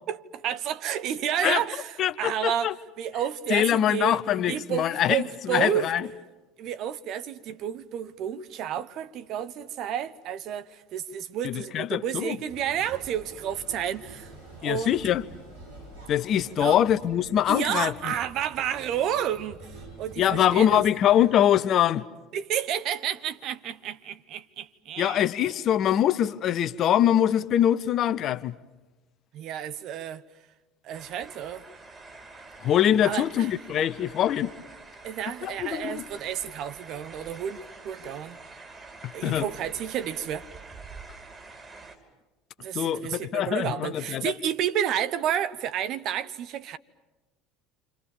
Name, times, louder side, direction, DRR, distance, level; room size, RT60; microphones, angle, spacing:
voice 1, 0.1-2.7 3.0-4.2 4.5-5.9 6.6-14.3 14.6-15.0 16.6-16.8 17.5-20.8 22.3-25.2 29.3-30.2 30.8-31.6 33.0-33.5 35.0-38.4 39.1-40.5 42.6-46.8, right 9 dB, 55° right, 1.1 m, -31 dB
voice 2, 2.0-2.7 3.5-6.1 11.4-12.4 14.6-15.2 16.1-18.1 20.2-22.0 25.0-28.6 32.6-34.5 35.4-36.0 39.0-39.5 42.7-44.3, left 10 dB, 50° left, 0.9 m, -23 dB
sound 1, 12.5-20.9, right 2 dB, 90° right, 7.4 m, -47 dB
sound 2, 30.9-42.0, right 3 dB, 20° right, 5.1 m, -46 dB
29.0 x 26.0 x 7.3 m
hypercardioid pair, 70°, 0 cm